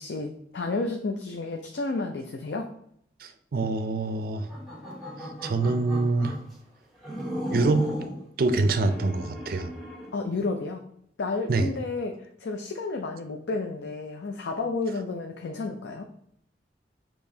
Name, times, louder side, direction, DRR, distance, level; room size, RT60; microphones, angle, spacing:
voice 1, 0.0-2.7 10.1-10.8 11.2-16.0, left 3 dB, 75° left, 3 dB, 0.4 m, -31 dB
voice 2, 3.2-4.5 5.2-6.3 7.5-7.9 8.4-9.7 11.5-11.7, right 3 dB, 55° right, 9 dB, 0.4 m, -25 dB
sound 1, 4.4-6.5 7.0-8.2 8.7-10.1, equal, ahead, 1.1 m, -35 dB
6.6 x 2.9 x 2.7 m, 0.69 s
head